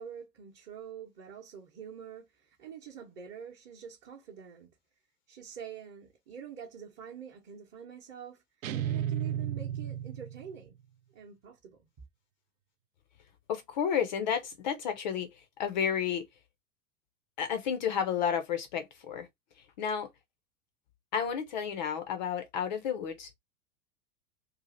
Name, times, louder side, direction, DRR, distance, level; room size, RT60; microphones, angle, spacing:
voice 1, 0.0-4.7 5.3-8.4 8.8-10.8 11.1-11.8, right 8 dB, 25° right, 0.9 m, -46 dB
sound 1, 8.6-10.7, right 10 dB, 55° right, 0.5 m, -33 dB
voice 2, 13.5-16.2 17.4-19.3 19.8-20.1 21.1-23.4, left 7 dB, 30° left, 0.4 m, -31 dB
2.6 x 2.5 x 3.7 m
figure-of-eight pair, 95°, 48 cm